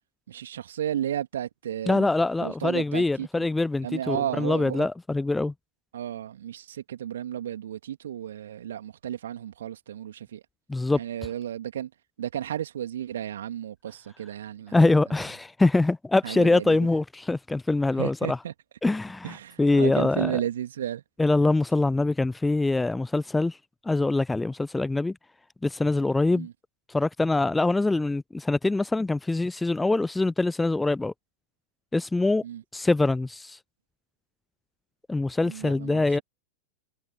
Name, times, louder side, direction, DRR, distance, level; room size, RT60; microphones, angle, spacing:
voice 1, 0.3-2.1 2.4-3.5 3.8-4.9 5.9-10.4 10.9-11.9 12.2-14.9 16.2-16.9 18.0-18.5 19.2-21.0 26.3-26.5 32.4-32.6 35.4-36.2, right 10 dB, 60° right, 3.0 m, -33 dB
voice 2, 1.9-5.5 10.7-11.0 14.7-18.4 18.8-20.4 21.2-23.6 23.9-25.1 25.6-26.5 26.9-31.1 31.9-32.4 32.7-33.6 35.1-36.2, left 2 dB, 10° left, 0.4 m, -24 dB
figure-of-eight pair, 90°, 0 cm